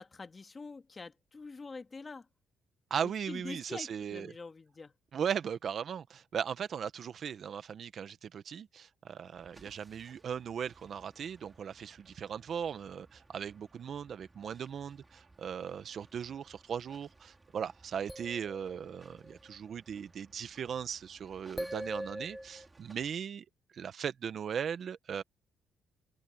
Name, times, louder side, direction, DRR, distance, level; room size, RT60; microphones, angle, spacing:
voice 1, 0.0-2.3 3.0-4.9, left 4 dB, 30° left, 2.1 m, -45 dB
voice 2, 2.9-4.3 5.1-23.4 23.7-25.2, right 7 dB, 55° right, 1.4 m, -38 dB
sound 1, 9.3-23.1, right 2 dB, 20° right, 3.7 m, -62 dB
sound 2, 18.1-19.5 21.6-22.7, equal, ahead, 1.5 m, -41 dB
open air
cardioid pair, 105°, 0 cm